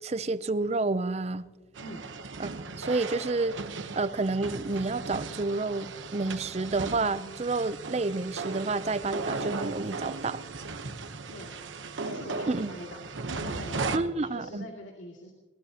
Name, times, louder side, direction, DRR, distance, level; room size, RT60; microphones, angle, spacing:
voice 1, 0.0-1.4 2.4-2.5 2.8-3.6 3.9-10.4 12.5-12.7 13.9-14.7, right 3 dB, 35° right, 14 dB, 0.5 m, -29 dB
sound 1, 1.8-14.0, right 3 dB, 80° right, 1.0 m, -37 dB
voice 2, 11.3-15.3, left 1 dB, 90° left, 0 dB, 2.4 m, -44 dB
22.0 x 19.0 x 2.9 m, 1.2 s
head